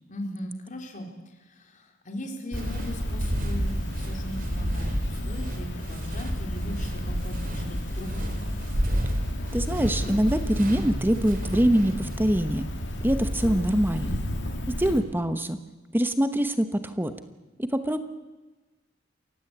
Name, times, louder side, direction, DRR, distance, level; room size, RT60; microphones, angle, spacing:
voice 1, 0.1-8.5, equal, 40° left, 3 dB, 3.8 m, -39 dB
Cricket, 2.5-15.0, equal, 65° left, 2.8 m, -33 dB
Walk footsteps, 2.5-12.2, equal, 45° right, 3.2 m, -31 dB
voice 2, 9.5-12.6 13.0-14.2 14.8-15.6 15.9-17.1 17.6-18.0, equal, 10° right, 10 dB, 1.1 m, -24 dB
28.5 x 15.5 x 8.2 m, 1.2 s
head